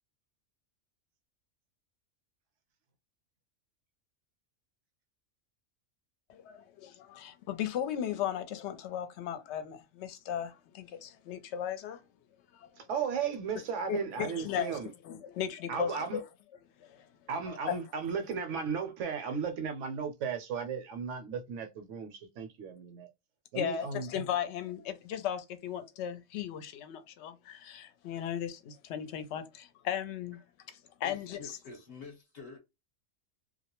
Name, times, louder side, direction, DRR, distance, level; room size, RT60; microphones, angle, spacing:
voice 1, 6.3-12.0 12.5-12.7 13.9-14.7 15.1-16.2 16.8-17.1 17.5-17.8 23.5-30.4 31.0-31.5, left 9 dB, 65° left, 0.8 m, -36 dB
voice 2, 12.8-14.9 15.7-16.2 17.3-23.1 23.5-24.1, right 6 dB, 70° right, 0.9 m, -35 dB
voice 3, 31.0-32.6, left 4 dB, 35° left, 0.9 m, -47 dB
2.3 x 2.0 x 2.9 m
omnidirectional pair, 1.3 m